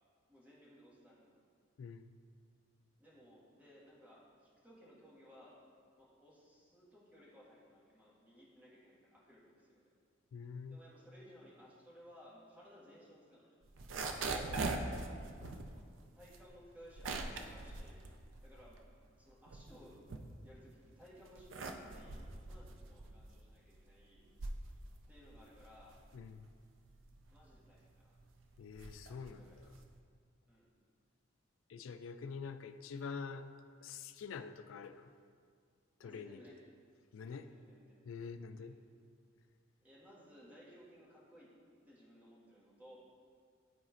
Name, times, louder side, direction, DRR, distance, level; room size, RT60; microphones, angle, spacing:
voice 1, 0.3-1.4 3.0-5.6 5.9-9.9 10.7-13.6 16.1-18.0 18.4-20.0 20.4-24.3 25.1-26.0 27.3-28.1 29.1-29.6 30.5-30.7 36.0-36.6 37.4-38.0 38.5-39.1 39.8-41.5 41.8-43.0, equal, 10° right, -7 dB, 1.6 m, -60 dB
voice 2, 10.3-10.8 14.5-15.1 15.4-15.7 26.1-26.4 28.6-29.7 31.7-33.5 33.8-35.1 36.0-36.5 37.1-37.5 38.1-38.8, left 5 dB, 80° left, 10 dB, 0.4 m, -46 dB
sound 1, 13.6-18.9 19.3-20.7 21.2-30.0, right 3 dB, 75° right, 0.5 m, -43 dB
12.5 x 4.3 x 2.5 m, 2.1 s
head